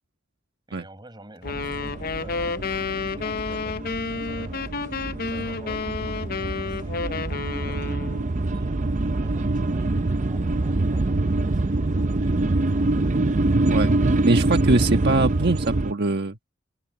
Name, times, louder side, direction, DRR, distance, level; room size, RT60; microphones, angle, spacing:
voice 1, 0.7-4.7 5.3-8.0 8.5-13.1, right 1 dB, 25° right, 6.1 m, -48 dB
sound 1, 1.4-8.3, left 4 dB, 50° left, 0.7 m, -30 dB
sound 2, 1.5-15.9, right 2 dB, 40° right, 0.6 m, -25 dB
voice 2, 14.2-16.3, right 2 dB, 60° right, 1.3 m, -22 dB
open air
head